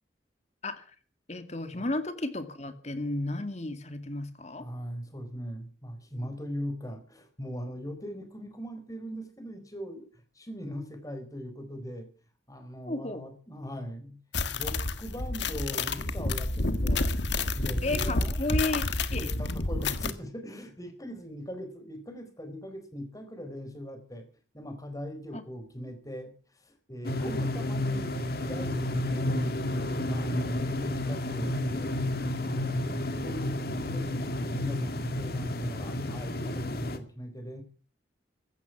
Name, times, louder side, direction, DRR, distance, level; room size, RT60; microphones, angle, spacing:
voice 1, 0.6-0.9 1.3-4.7 12.8-13.3 17.8-18.8 19.1-19.3 25.3-25.4 27.3-27.4, left 2 dB, 35° left, 9 dB, 2.2 m, -33 dB
voice 2, 4.6-12.1 12.5-14.2 14.5-17.1 17.6-18.4 19.1-24.3 24.5-28.2 28.4-37.6, equal, 20° left, 8 dB, 4.3 m, -40 dB
sound 1, 14.3-20.1, left 2 dB, 75° left, 1.6 m, -29 dB
sound 2, 27.0-37.0, left 1 dB, 55° left, 2.2 m, -31 dB
16.0 x 13.0 x 5.9 m, 0.40 s
head